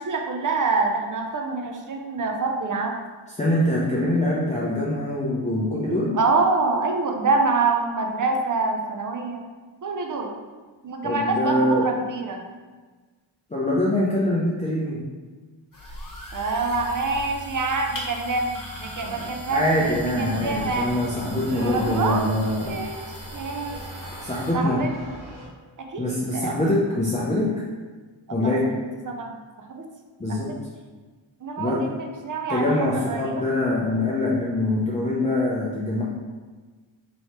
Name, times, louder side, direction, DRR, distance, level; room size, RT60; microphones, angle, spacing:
voice 1, 0.0-3.0 6.1-9.4 9.8-10.3 10.8-12.4 16.3-20.9 21.6-22.4 22.6-23.0 23.3-23.8 24.5-25.1 25.8-26.6 28.4-28.6 29.1-29.3 29.7-29.9 30.3-30.6 31.4-33.4, right 3 dB, 40° right, 3 dB, 0.7 m, -26 dB
voice 2, 3.4-6.2 11.0-11.9 13.5-15.0 19.0-22.8 24.2-24.8 26.0-27.6 28.3-28.7 30.2-30.5 31.6-31.9 32.5-36.0, left 1 dB, 15° left, -7 dB, 0.7 m, -24 dB
sound 1, 15.7-24.5, equal, 40° left, 1.1 m, -39 dB
sound 2, 19.8-25.5, right 1 dB, 75° right, 1.4 m, -38 dB
3.2 x 3.1 x 4.3 m, 1.4 s
cardioid pair, 70°, 48 cm